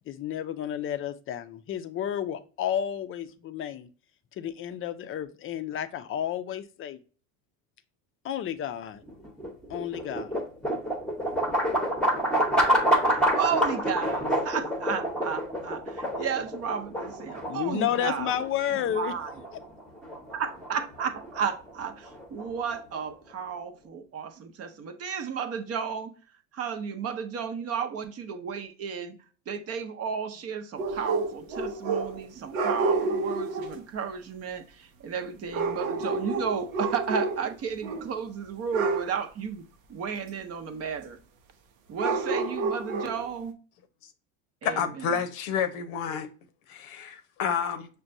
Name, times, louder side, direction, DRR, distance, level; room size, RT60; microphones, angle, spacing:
voice 1, 0.1-3.9 4.3-7.0 8.2-9.0 9.7-10.3 17.5-19.1, left 10 dB, 35° left, 0.4 m, -31 dB
sound 1, 9.0-23.1, equal, ahead, 0.8 m, -28 dB
voice 2, 13.1-18.3 18.7-19.3 20.3-26.1 26.5-29.2 29.5-39.6 39.9-41.2 41.9-43.6 44.6-45.2, right 7 dB, 40° right, 0.6 m, -33 dB
Dog Across The Street, 30.8-32.2 32.5-33.8 35.5-37.6 37.8-38.1 38.7-39.1 42.0-43.3, right 3 dB, 90° right, 0.7 m, -29 dB
voice 3, 44.6-46.3 46.7-47.9, left 7 dB, 85° left, 0.8 m, -29 dB
6.0 x 2.2 x 2.6 m
supercardioid pair, 95°, 41 cm